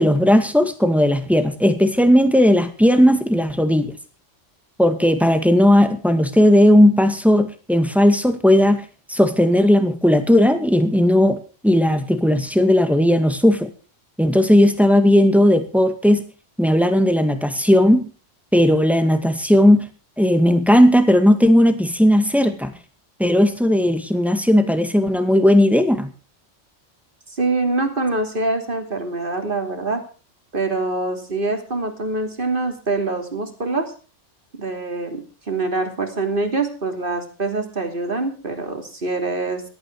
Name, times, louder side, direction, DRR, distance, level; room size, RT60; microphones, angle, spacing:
voice 1, 0.0-3.9 4.8-13.7 14.2-16.2 16.6-18.1 18.5-19.9 20.2-22.7 23.2-26.1, left 1 dB, ahead, 8 dB, 2.0 m, -16 dB
voice 2, 27.3-30.0 30.5-33.9 34.5-39.6, right 3 dB, 45° right, 6 dB, 3.3 m, -24 dB
18.5 x 13.0 x 4.8 m, 0.37 s
omnidirectional pair, 1.3 m